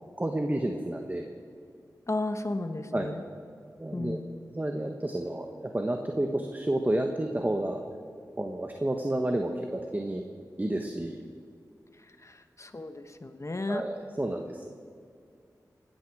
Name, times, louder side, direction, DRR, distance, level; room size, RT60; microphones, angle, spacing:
voice 1, 0.2-1.3 2.9-3.1 3.8-4.2 4.5-7.8 8.4-10.2 10.6-11.2 13.7-14.7, right 1 dB, 25° right, 4 dB, 1.3 m, -30 dB
voice 2, 2.1-3.2 3.9-4.2 12.0-13.8, left 2 dB, 40° left, 8 dB, 1.3 m, -34 dB
19.5 x 13.5 x 4.8 m, 2.3 s
cardioid pair, 40°, 7 cm